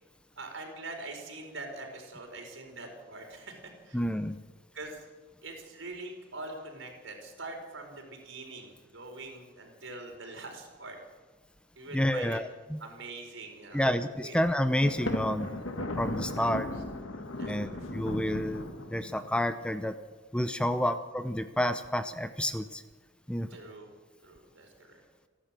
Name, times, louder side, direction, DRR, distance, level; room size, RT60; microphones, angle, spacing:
voice 1, 0.4-4.0 4.7-5.1 5.4-11.0 11.7-12.4 12.8-13.9 14.2-14.3 17.3-17.8 23.5-23.9 24.2-25.0, right 2 dB, 80° right, 3 dB, 4.8 m, -43 dB
voice 2, 3.9-4.4 11.9-12.8 13.7-15.5 16.0-16.7 17.4-20.0 20.3-22.8 23.3-23.5, left 1 dB, 5° left, 10 dB, 0.6 m, -29 dB
Thunder, 14.8-19.4, left 1 dB, 90° left, 1.9 m, -36 dB
30.0 x 11.5 x 7.6 m, 1.4 s
head